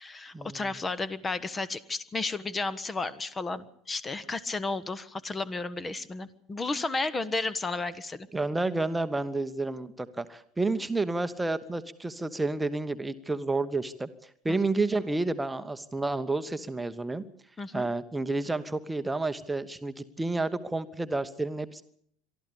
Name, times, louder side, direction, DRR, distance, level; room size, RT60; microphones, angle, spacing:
voice 1, 0.0-8.3 14.5-14.6 17.6-17.9, left 3 dB, 20° left, 18 dB, 1.1 m, -33 dB
voice 2, 8.3-14.1 14.4-17.2 17.7-21.8, right 2 dB, 10° right, 10 dB, 1.0 m, -30 dB
23.5 x 13.5 x 8.5 m, 0.65 s
figure-of-eight pair, 70°, 0 cm